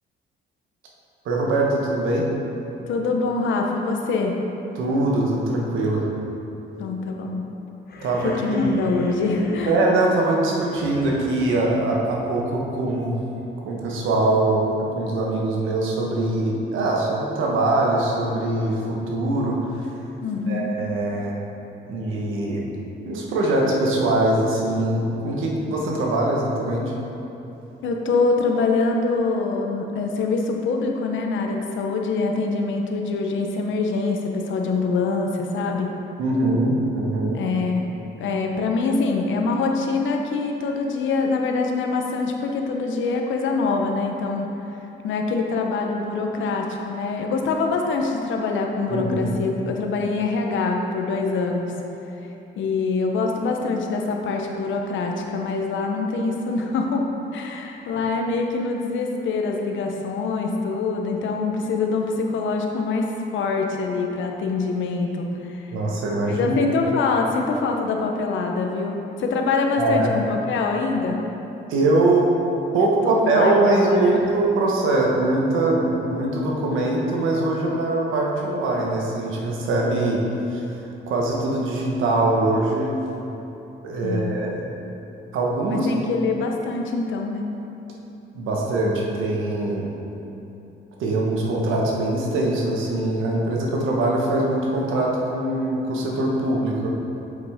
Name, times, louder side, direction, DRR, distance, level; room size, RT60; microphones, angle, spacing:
voice 1, 1.2-2.3 4.7-6.1 8.0-8.7 9.7-13.2 13.6-19.9 20.5-21.3 21.9-22.6 23.0-26.9 36.2-37.4 48.9-49.4 65.7-66.6 69.8-70.1 71.7-72.3 72.7-80.2 80.5-80.6 81.1-82.9 83.8-84.7 85.3-85.9 88.3-89.9 91.0-96.9, right 2 dB, 85° right, -2 dB, 1.3 m, -22 dB
voice 2, 2.9-4.4 6.8-7.5 8.2-9.8 20.2-20.7 27.8-35.9 37.3-37.9 38.2-44.5 45.0-51.7 52.6-57.0 57.3-65.7 66.2-71.2 73.0-74.2 84.0-84.3 85.7-87.4, left 4 dB, 75° left, 2 dB, 0.9 m, -24 dB
sound 1, 7.9-12.6, left 2 dB, 50° left, 1.0 m, -42 dB
7.9 x 5.9 x 3.6 m, 2.9 s
cardioid pair, 90°, 20 cm